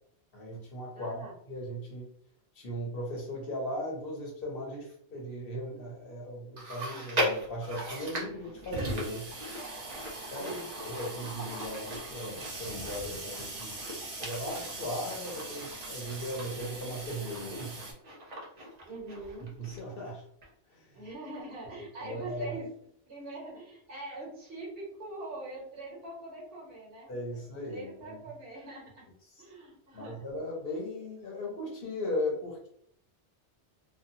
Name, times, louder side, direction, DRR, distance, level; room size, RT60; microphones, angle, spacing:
voice 1, 0.3-2.1 2.5-9.3 10.3-10.5 10.8-13.8 14.2-17.8 19.4-20.2 20.7-21.0 22.0-22.6 27.1-28.2 29.9-32.7, left 1 dB, 55° left, -2 dB, 1.0 m, -37 dB
voice 2, 0.9-1.3 10.4-10.7 18.8-19.5 20.9-22.7 23.0-27.4 27.7-29.0 29.4-30.2, right 2 dB, 60° right, -4 dB, 1.4 m, -43 dB
Chewing mastication, 6.6-20.1 20.4-20.5 21.3-21.4, equal, 40° right, 0.8 m, -39 dB
Water tap faucet / Sink (filling or washing), 8.1-17.9, right 2 dB, 80° right, 1.2 m, -41 dB
2.7 x 2.5 x 2.7 m, 0.68 s
omnidirectional pair, 1.2 m